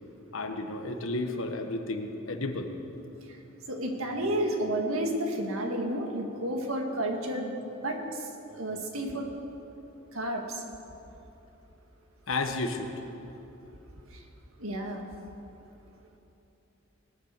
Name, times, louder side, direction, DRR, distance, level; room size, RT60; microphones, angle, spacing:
voice 1, 0.3-2.7 12.3-12.9, left 2 dB, 80° left, 5 dB, 1.3 m, -32 dB
voice 2, 3.7-7.5 7.8-9.3 10.1-10.6 14.1-14.2 14.6-15.0, right 1 dB, 85° right, 2 dB, 2.0 m, -31 dB
20.5 x 9.1 x 6.8 m, 2.9 s
head